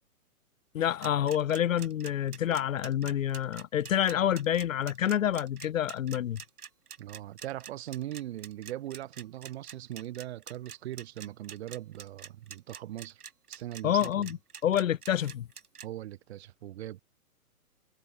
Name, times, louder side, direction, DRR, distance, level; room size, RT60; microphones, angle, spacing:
voice 1, 0.7-6.4 13.8-14.4 14.6-15.5, left 10 dB, 60° left, 1.1 m, -28 dB
sound 1, 1.0-15.9, right 7 dB, 80° right, 4.5 m, -46 dB
voice 2, 7.0-13.2 13.5-14.2 15.8-17.0, right 13 dB, 45° right, 4.7 m, -40 dB
hypercardioid pair, 150°, 45 cm